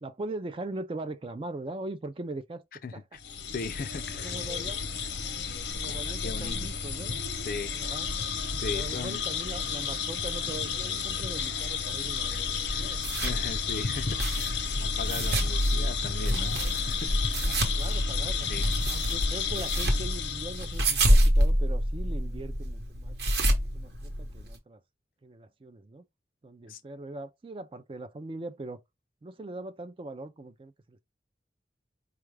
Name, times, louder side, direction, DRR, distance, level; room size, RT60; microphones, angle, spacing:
voice 1, 0.0-2.6 4.2-4.8 5.7-7.2 7.7-8.1 8.6-13.0 17.5-18.5 18.9-23.1 23.7-24.8 25.2-26.0 26.4-28.8 29.2-31.0, right 2 dB, 30° right, 0.4 m, -40 dB
voice 2, 2.8-3.2 3.5-4.4 5.8-6.7 7.3-7.7 8.6-9.3 12.3-12.4 12.7-17.4 18.5-18.7 26.7-26.8, left 4 dB, 50° left, 0.4 m, -39 dB
sound 1, 3.2-21.0, left 4 dB, 85° left, 0.8 m, -31 dB
sound 2, 12.6-24.6, equal, 65° right, 0.9 m, -28 dB
4.6 x 2.3 x 3.2 m
head